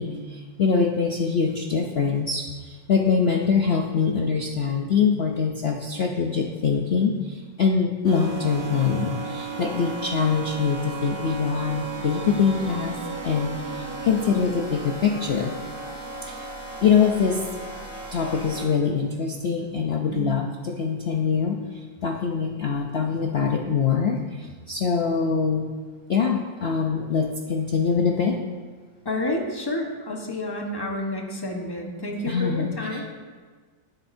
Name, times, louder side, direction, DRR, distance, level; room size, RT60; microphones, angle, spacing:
voice 1, 0.0-13.0 13.2-15.5 16.2-16.5 16.8-17.4 18.1-25.7 26.1-28.4 32.3-33.1, left 6 dB, 80° left, 2 dB, 0.5 m, -24 dB
sound 1, 8.0-18.7, right 3 dB, 90° right, 2.6 m, -35 dB
voice 2, 29.0-33.0, left 1 dB, 15° left, 0 dB, 1.0 m, -30 dB
16.5 x 8.4 x 2.7 m, 1.5 s
omnidirectional pair, 2.0 m